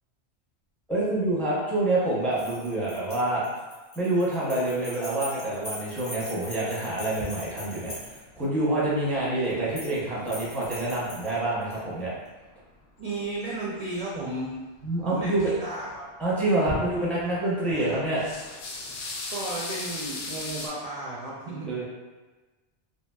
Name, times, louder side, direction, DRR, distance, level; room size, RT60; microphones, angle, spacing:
voice 1, 0.9-3.4 4.0-12.1 14.8-15.6 16.2-18.2 21.7-21.8, right 2 dB, ahead, -7 dB, 0.5 m, -27 dB
sound 1, 2.3-8.4 9.5-10.0 10.3-11.8, left 1 dB, 30° left, 0.9 m, -42 dB
sound 2, 7.2-10.8 11.2-12.2 12.5-12.6 13.0-14.3 14.8-16.0 16.3-17.3 17.7-20.7, left 2 dB, 85° left, 0.9 m, -38 dB
voice 2, 13.0-14.5 15.0-16.0 17.7-18.0 19.3-21.8, right 2 dB, 60° right, -5 dB, 0.4 m, -34 dB
2.8 x 2.8 x 2.2 m, 1.2 s
omnidirectional pair, 1.1 m